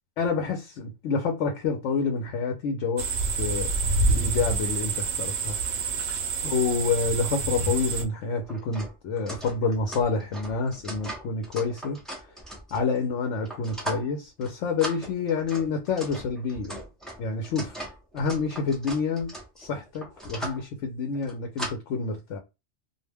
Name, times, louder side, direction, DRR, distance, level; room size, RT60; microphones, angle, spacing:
voice 1, 0.2-3.0 3.4-3.7 4.1-5.6 6.4-12.0 12.7-16.8 17.2-17.7 18.1-19.3 19.6-22.4, left 4 dB, 80° left, 0.9 m, -28 dB
sound 1, 3.0-8.1, right 3 dB, 70° right, 0.8 m, -27 dB
sound 2, 7.2-7.3 7.6-7.7 8.3-13.0 13.4-14.1 14.4-14.5 14.8-20.6 21.1-21.7, right 1 dB, ahead, 0.4 m, -39 dB
2.4 x 2.1 x 3.3 m
omnidirectional pair, 1.2 m